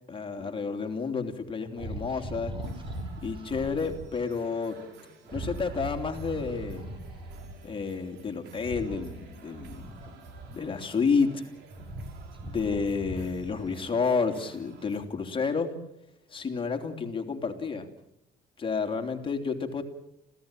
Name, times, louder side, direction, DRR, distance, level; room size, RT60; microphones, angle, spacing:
voice 1, 0.1-2.5 3.2-4.8 5.3-6.8 7.6-10.0 10.5-11.5 12.4-15.7 16.3-17.9 18.6-19.8, left 5 dB, 30° left, 6 dB, 3.2 m, -30 dB
sound 1, 1.8-4.1 5.2-7.6 8.6-10.9 11.4-13.8, right 1 dB, 30° right, 5.3 m, -40 dB
sound 2, 2.6-15.0, right 4 dB, 85° right, 6.0 m, -52 dB
26.5 x 16.5 x 9.1 m, 0.85 s
cardioid pair, 110°, 17 cm